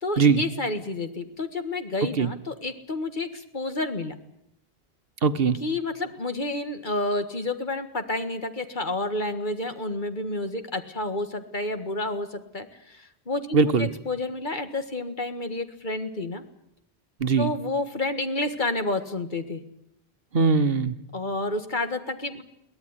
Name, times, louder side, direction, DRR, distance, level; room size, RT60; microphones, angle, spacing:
voice 1, 0.0-4.1 5.6-16.4 17.4-19.6 21.1-22.4, left 2 dB, 50° left, 8 dB, 1.9 m, -30 dB
voice 2, 5.2-5.6 13.5-13.9 17.2-17.5 20.3-21.0, right 5 dB, 70° right, 12 dB, 1.3 m, -20 dB
23.0 x 17.5 x 9.9 m, 0.79 s
omnidirectional pair, 1.0 m